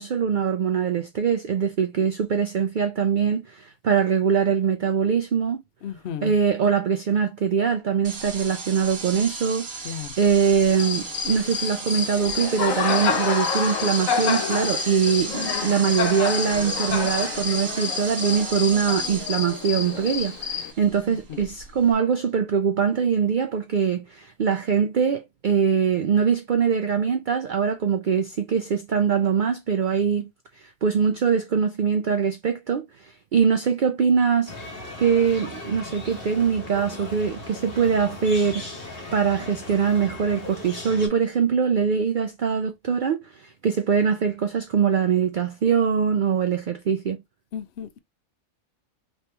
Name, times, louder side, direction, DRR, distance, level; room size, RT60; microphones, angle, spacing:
voice 1, 0.0-5.6 6.2-30.3 30.6-34.5 35.0-38.6 39.1-47.2, right 6 dB, 80° right, 0.4 m, -23 dB
voice 2, 5.8-6.3 9.8-10.1 21.3-21.4 47.5-47.9, left 8 dB, 60° left, 0.8 m, -33 dB
sound 1, 8.0-21.9, right 3 dB, 50° right, 1.2 m, -35 dB
Cricket, 10.7-20.7, left 7 dB, 75° left, 1.1 m, -28 dB
sound 2, 34.5-41.1, left 2 dB, 45° left, 1.6 m, -38 dB
3.1 x 2.9 x 3.3 m
omnidirectional pair, 1.4 m